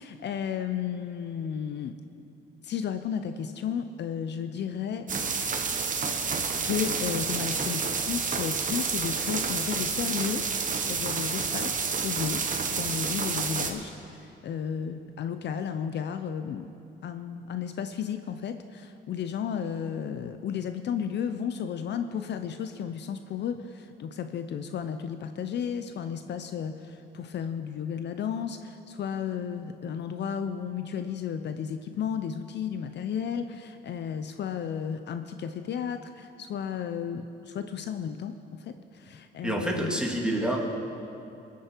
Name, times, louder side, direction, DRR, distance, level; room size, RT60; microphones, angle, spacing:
voice 1, 0.0-1.9 2.6-5.1 6.2-10.5 10.9-12.4 12.7-16.7 17.0-40.0, left 8 dB, 60° left, 9 dB, 0.6 m, -33 dB
Rainy night in New Orleans, 5.1-13.7, right 5 dB, 40° right, 1.1 m, -29 dB
voice 2, 39.4-40.6, right 1 dB, 5° right, -1 dB, 2.2 m, -28 dB
21.0 x 8.5 x 4.5 m, 2.6 s
cardioid pair, 90°, 20 cm